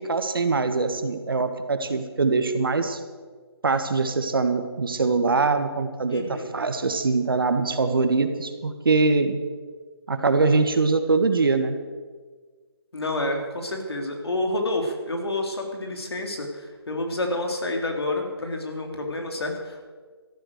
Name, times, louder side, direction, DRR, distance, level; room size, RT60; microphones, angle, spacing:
voice 1, 0.1-3.0 3.6-9.4 10.1-11.8, right 3 dB, 55° right, 8 dB, 1.5 m, -23 dB
voice 2, 6.1-6.5 12.9-19.9, left 2 dB, 70° left, 3 dB, 3.2 m, -29 dB
13.5 x 12.0 x 6.5 m, 1.5 s
hypercardioid pair, 175°, 14 cm